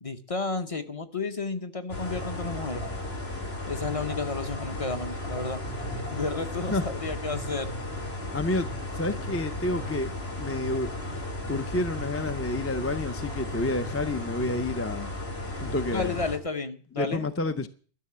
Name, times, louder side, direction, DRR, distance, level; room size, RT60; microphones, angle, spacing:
voice 1, 0.0-2.9 3.7-5.6 6.1-7.7 15.9-17.2, left 3 dB, 35° left, 1.0 m, -32 dB
sound 1, 1.9-16.4, left 1 dB, 70° left, 2.6 m, -34 dB
voice 2, 8.3-8.7 8.9-10.1 10.4-10.9 11.5-15.1 15.6-16.1 17.0-17.7, left 2 dB, 20° left, 0.5 m, -29 dB
12.5 x 6.7 x 9.6 m
omnidirectional pair, 1.1 m